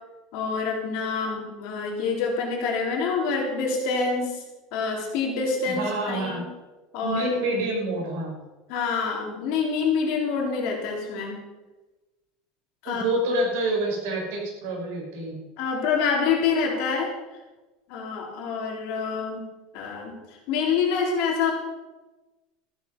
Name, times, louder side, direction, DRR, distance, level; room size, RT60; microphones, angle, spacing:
voice 1, 0.3-4.4 4.7-6.5 6.9-7.3 8.7-11.4 12.8-13.0 15.6-17.1 17.9-19.5 19.7-20.2 20.5-21.5, left 5 dB, 50° left, -1 dB, 3.9 m, -26 dB
voice 2, 5.7-6.4 7.0-8.3 12.8-15.3, right 1 dB, 65° right, -1 dB, 5.6 m, -27 dB
14.5 x 11.5 x 5.5 m, 1.1 s
supercardioid pair, 175°, 0 cm